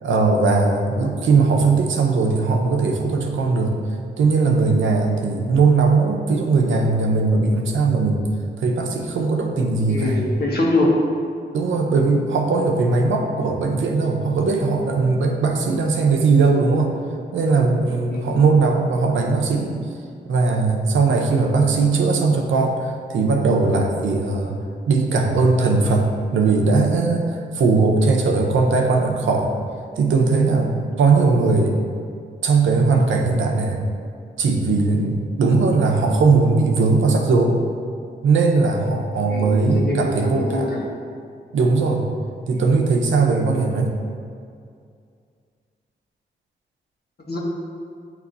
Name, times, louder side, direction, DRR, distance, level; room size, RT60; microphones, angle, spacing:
voice 1, 0.0-3.7 4.2-8.3 8.6-10.2 11.5-16.9 17.3-19.7 20.3-26.1 26.3-29.5 30.0-31.7 32.4-33.8 34.4-37.6 38.2-40.7 41.5-42.0 42.5-43.9, right 4 dB, 85° right, 2 dB, 0.7 m, -19 dB
voice 2, 9.9-10.9 11.7-11.8 18.1-18.4 39.3-40.8 42.5-42.7 47.2-47.4, left 2 dB, 55° left, -3 dB, 1.4 m, -24 dB
8.3 x 3.0 x 3.9 m, 2.3 s
cardioid pair, 50°, 20 cm